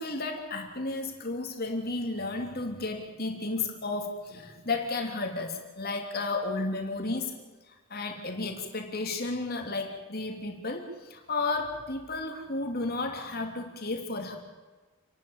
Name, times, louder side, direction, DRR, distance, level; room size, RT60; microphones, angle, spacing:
voice 1, 0.0-7.3 7.7-14.4, left 3 dB, 45° left, 3 dB, 3.1 m, -33 dB
28.5 x 12.5 x 8.9 m, 1.3 s
head